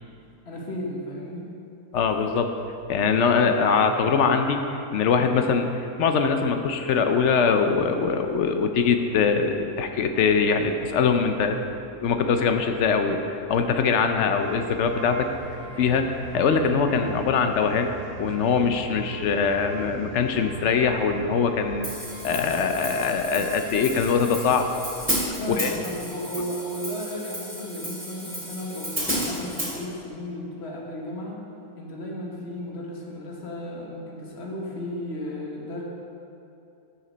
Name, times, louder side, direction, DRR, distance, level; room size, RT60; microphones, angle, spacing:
voice 1, 0.4-1.5 25.4-31.4 31.7-35.8, left 1 dB, 50° left, -2 dB, 1.5 m, -34 dB
voice 2, 1.9-2.5 2.9-5.7 6.0-15.3 15.8-17.9 18.2-21.9 22.2-24.7 25.5-25.8, left 5 dB, 65° left, 6 dB, 0.8 m, -22 dB
sound 1, 14.4-25.3, right 4 dB, 80° right, 1.3 m, -42 dB
Hi-hat, 21.8-29.7, equal, 10° right, 1.7 m, -32 dB
7.2 x 6.8 x 5.1 m, 2.7 s
omnidirectional pair, 1.5 m